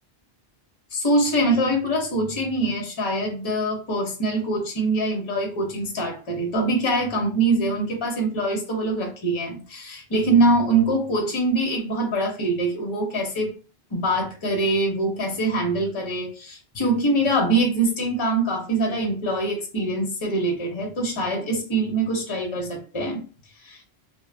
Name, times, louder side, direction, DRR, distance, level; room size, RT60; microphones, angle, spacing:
voice 1, 0.9-13.5 13.9-23.2 23.6-23.8, right 2 dB, 30° left, 1 dB, 0.7 m, -24 dB
2.4 x 2.1 x 3.2 m, 0.36 s
omnidirectional pair, 1.1 m